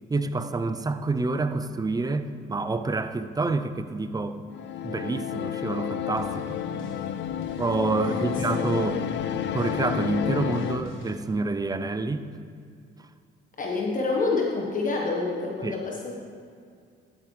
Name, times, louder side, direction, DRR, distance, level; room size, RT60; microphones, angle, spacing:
voice 1, 0.1-4.4 4.8-6.6 7.6-9.0 9.5-12.3 15.6-15.8, right 3 dB, 20° right, 11 dB, 0.5 m, -28 dB
sound 1, 4.5-10.8, left 10 dB, 65° left, 0.5 m, -31 dB
sound 2, 6.1-11.3, left 1 dB, 85° left, 1.3 m, -43 dB
voice 2, 8.0-9.1 13.6-16.1, left 3 dB, 40° left, -1 dB, 1.2 m, -28 dB
11.5 x 8.7 x 3.2 m, 2.3 s
cardioid pair, 90°, 20 cm